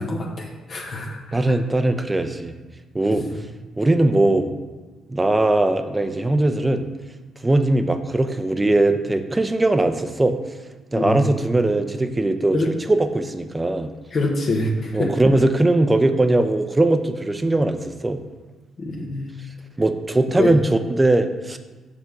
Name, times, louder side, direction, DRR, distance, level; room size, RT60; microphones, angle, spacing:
voice 1, 0.0-1.4 3.1-3.3 10.9-11.3 12.5-12.7 14.1-15.1 18.8-19.3 20.4-20.5, left 2 dB, 50° left, -1 dB, 1.1 m, -25 dB
voice 2, 1.3-2.5 2.9-3.2 3.8-4.5 5.1-6.9 7.4-10.4 10.9-13.9 14.9-18.2 19.8-21.6, right 2 dB, 20° right, 8 dB, 0.7 m, -20 dB
6.7 x 3.4 x 5.9 m, 1.3 s
hypercardioid pair, 45°, 0 cm